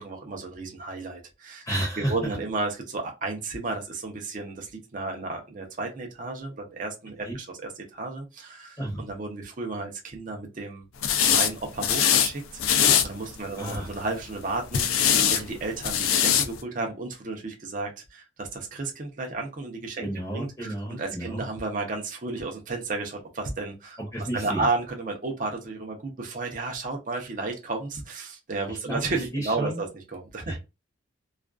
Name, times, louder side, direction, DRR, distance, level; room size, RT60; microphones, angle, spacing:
voice 1, 0.0-1.7 2.0-7.5 7.9-10.9 11.2-24.0 24.3-30.6, right 3 dB, 40° right, 0.6 m, -33 dB
voice 2, 1.6-2.1 7.2-7.4 8.8-9.0 13.6-13.9 20.0-21.5 24.0-24.7 28.7-29.0 29.3-29.8 30.5-30.6, right 1 dB, 15° left, 0.7 m, -31 dB
sound 1, 11.0-11.5 11.8-12.3 12.6-13.0 13.6-14.0 14.7-15.4 15.8-16.5, left 8 dB, 85° left, 0.4 m, -21 dB
2.4 x 2.3 x 2.2 m
head